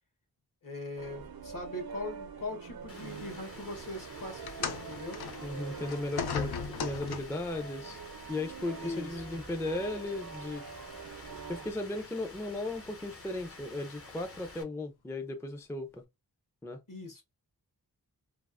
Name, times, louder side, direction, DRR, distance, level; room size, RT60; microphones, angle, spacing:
voice 1, 0.6-5.2 8.8-9.4 16.9-17.2, left 2 dB, 55° left, 1.3 m, -41 dB
sound 1, 1.0-11.7, right 6 dB, 65° right, 0.5 m, -45 dB
Rain, 2.9-14.6, left 2 dB, 35° left, 0.7 m, -50 dB
sound 2, 4.4-7.5 8.5-8.7 9.5-9.6, left 6 dB, 75° left, 0.5 m, -37 dB
voice 2, 5.4-8.0 8.3-10.7 11.5-16.0 16.6-16.8, left 2 dB, 5° left, 0.4 m, -36 dB
3.3 x 2.0 x 2.4 m
wide cardioid pair, 50°, 39 cm